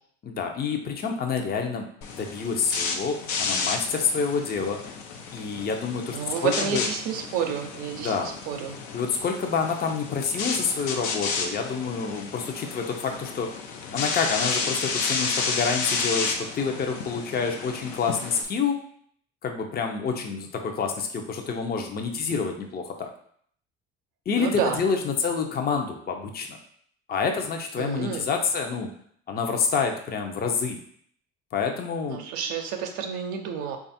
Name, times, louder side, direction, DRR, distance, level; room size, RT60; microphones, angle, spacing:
voice 1, 0.2-1.8 2.1-4.8 5.3-6.8 8.0-8.3 8.9-13.5 13.9-18.8 19.4-23.1 24.3-26.6 27.1-28.9 29.3-30.8 31.5-32.2, left 5 dB, 30° left, 3 dB, 0.6 m, -28 dB
sound 1, 2.0-18.4, left 4 dB, 80° left, 0.7 m, -31 dB
voice 2, 6.1-8.8 24.4-24.8 27.8-28.2 32.1-33.8, right 7 dB, 80° right, 3 dB, 0.6 m, -30 dB
3.3 x 2.4 x 4.1 m, 0.62 s
supercardioid pair, 80°, 29 cm